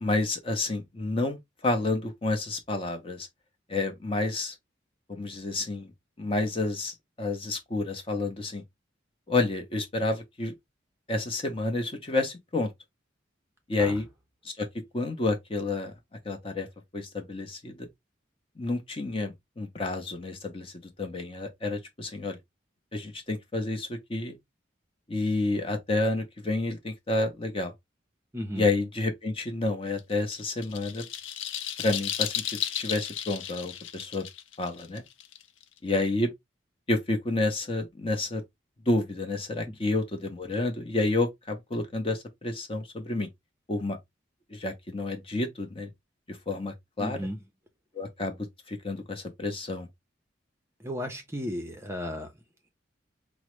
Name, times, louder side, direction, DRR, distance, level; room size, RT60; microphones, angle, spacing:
voice 1, 0.0-3.3 3.7-4.5 5.1-5.9 6.2-8.6 9.3-10.5 11.1-12.7 13.7-14.1 14.4-14.7 14.9-15.9 16.2-16.7 16.9-17.9 18.6-20.7 21.0-22.4 22.9-24.4 25.1-27.7 28.6-31.1 31.8-34.3 34.6-35.0 35.8-36.3 36.9-38.4 38.9-43.3 43.7-44.0 44.5-45.9 46.3-47.2 47.9-48.4 48.7-49.9, left 2 dB, 30° left, 0.7 m, -29 dB
voice 2, 28.3-28.7 39.7-39.8 47.0-47.4 50.8-52.3, equal, 15° right, 0.6 m, -34 dB
sound 1, 30.0-35.8, left 10 dB, 85° left, 0.5 m, -34 dB
4.7 x 2.1 x 3.1 m
head